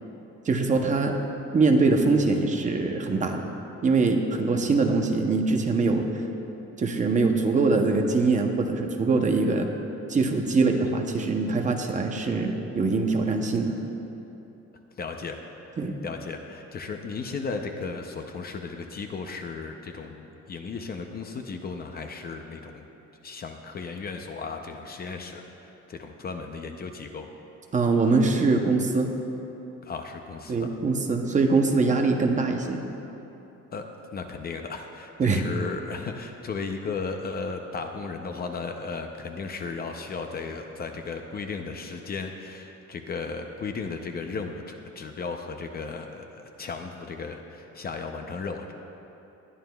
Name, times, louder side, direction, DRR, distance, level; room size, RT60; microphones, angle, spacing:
voice 1, 0.5-1.2 1.5-3.5 3.8-6.1 6.8-9.7 10.1-13.7 15.8-16.0 27.7-29.1 30.5-32.8 35.2-35.4, right 3 dB, 25° right, 3 dB, 0.7 m, -23 dB
voice 2, 15.0-22.9 23.2-27.3 29.8-30.7 33.7-33.9 34.1-48.7, left 4 dB, 35° left, 5 dB, 0.5 m, -35 dB
20.0 x 11.5 x 2.3 m, 2.9 s
cardioid pair, 175°, 29 cm